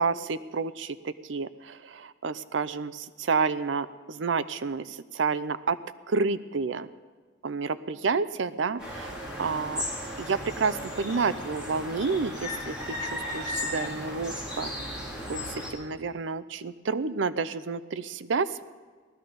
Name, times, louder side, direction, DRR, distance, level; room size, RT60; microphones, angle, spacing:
voice 1, 0.0-5.8 6.1-6.9 7.4-9.8 10.2-12.7 13.0-15.0 15.3-18.6, right 4 dB, 90° right, 15 dB, 0.6 m, -30 dB
sound 1, 8.8-15.7, left 1 dB, 5° right, 3.6 m, -35 dB
18.0 x 13.5 x 5.2 m, 1.5 s
head